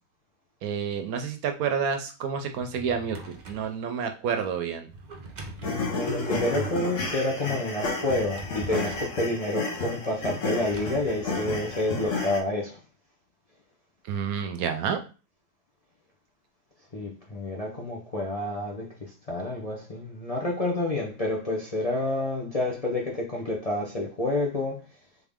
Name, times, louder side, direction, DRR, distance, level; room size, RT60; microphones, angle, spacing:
voice 1, 0.6-4.9 14.1-15.0, right 7 dB, 70° right, 1.0 m, -29 dB
Drawer open or close, 2.4-3.7 4.9-6.5 7.9-9.2 10.5-12.2, right 2 dB, 45° right, 0.6 m, -43 dB
sound 1, 5.6-12.4, left 3 dB, 55° left, 1.2 m, -31 dB
voice 2, 5.6-12.8 16.9-24.8, left 2 dB, 35° left, 0.6 m, -29 dB
3.9 x 3.6 x 3.5 m
omnidirectional pair, 1.7 m